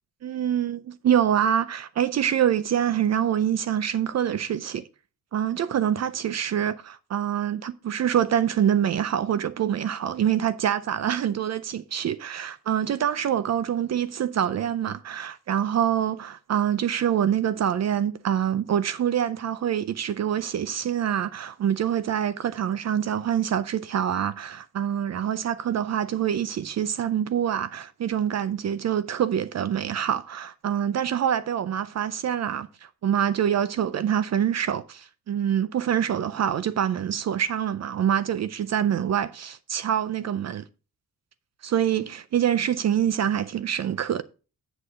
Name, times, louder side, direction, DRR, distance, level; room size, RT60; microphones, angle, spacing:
voice 1, 0.2-4.8 5.3-32.7 33.0-40.6 41.6-44.2, right 9 dB, 50° right, 0.5 m, -25 dB
8.1 x 7.8 x 3.6 m
wide cardioid pair, 145°, 34 cm